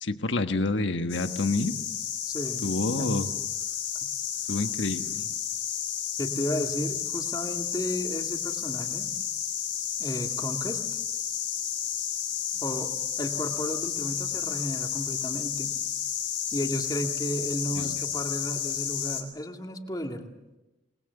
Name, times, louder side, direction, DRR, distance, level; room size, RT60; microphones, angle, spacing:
voice 1, 0.0-1.7 2.6-3.3 4.5-5.3 17.7-18.0, left 2 dB, 85° left, 8 dB, 1.4 m, -28 dB
sound 1, 1.1-19.2, left 10 dB, 60° left, 4.1 m, -32 dB
voice 2, 2.3-2.7 3.0-3.2 6.2-9.1 10.0-10.8 12.6-15.8 16.5-20.3, equal, 20° left, 3 dB, 2.4 m, -33 dB
27.5 x 20.5 x 7.2 m, 1.0 s
head